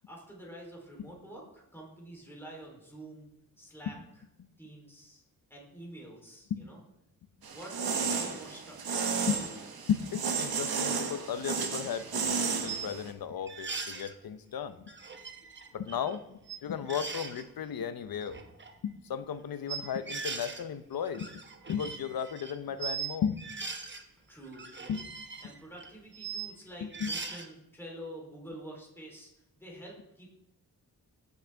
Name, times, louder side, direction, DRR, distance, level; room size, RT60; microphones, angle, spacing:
voice 1, 0.1-3.3 3.6-4.0 4.6-5.2 5.5-6.8 7.5-9.1 24.3-25.0 25.4-29.3 29.6-30.3, right 1 dB, 5° left, -2 dB, 3.3 m, -47 dB
sound 1, 7.4-13.1, right 5 dB, 90° right, 1.3 m, -33 dB
voice 2, 9.9-14.8 15.7-18.4 18.8-21.3 21.7-23.4 24.9-25.0 26.8-27.1, left 8 dB, 75° left, 12 dB, 0.7 m, -35 dB
sound 2, 12.0-12.1 12.7-12.9 13.5-14.1 14.9-16.2 16.4-16.6 16.9-17.4 18.1-18.7 19.7-20.6 20.9-23.1 23.4-24.0 24.4-26.5 26.9-27.5, right 5 dB, 30° right, 1.0 m, -40 dB
15.5 x 6.4 x 3.4 m, 0.84 s
wide cardioid pair, 110°, 36 cm